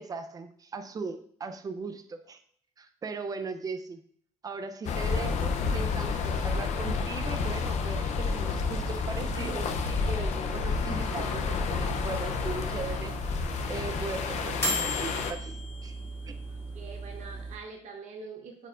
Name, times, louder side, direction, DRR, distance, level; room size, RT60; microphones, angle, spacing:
voice 1, 0.0-2.4 2.8-4.0 4.4-13.1 13.7-16.0 16.2-16.4, right 4 dB, 30° right, 8 dB, 0.5 m, -38 dB
sound 1, 4.8-15.3, left 5 dB, 65° left, 0.6 m, -30 dB
sound 2, 8.5-17.5, right 1 dB, 20° left, 1.5 m, -37 dB
voice 2, 16.5-18.7, right 4 dB, 70° right, 2 dB, 0.9 m, -45 dB
8.8 x 4.5 x 2.4 m, 0.63 s
cardioid pair, 140°, 13 cm